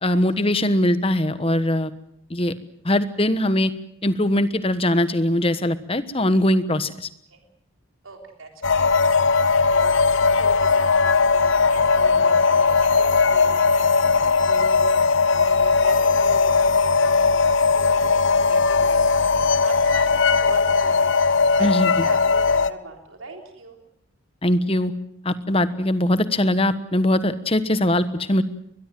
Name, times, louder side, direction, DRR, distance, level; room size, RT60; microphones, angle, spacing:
voice 1, 0.0-1.9 2.3-2.5 2.8-3.7 4.0-7.1 21.6-22.1 24.4-24.9 25.2-28.4, left 1 dB, 25° left, 13 dB, 1.3 m, -21 dB
voice 2, 8.0-14.9 15.2-19.0 19.3-21.1 21.6-23.8, right 3 dB, 80° right, 3 dB, 3.7 m, -39 dB
sound 1, 8.6-22.7, left 4 dB, 65° left, 0.9 m, -18 dB
22.5 x 21.5 x 7.7 m, 0.73 s
head